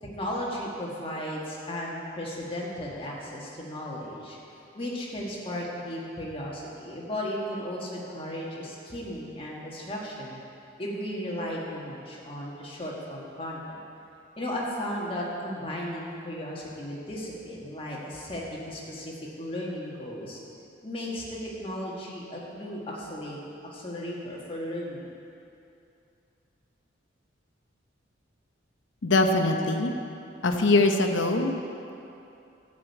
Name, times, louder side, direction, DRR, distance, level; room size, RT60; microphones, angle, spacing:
voice 1, 0.0-4.4 4.7-10.4 10.8-13.8 14.4-20.4 20.8-23.4 23.7-25.1, equal, 30° left, -4 dB, 1.6 m, -35 dB
voice 2, 29.0-29.9 30.4-31.5, left 2 dB, 80° left, 5 dB, 0.8 m, -22 dB
11.0 x 5.1 x 8.1 m, 2.7 s
head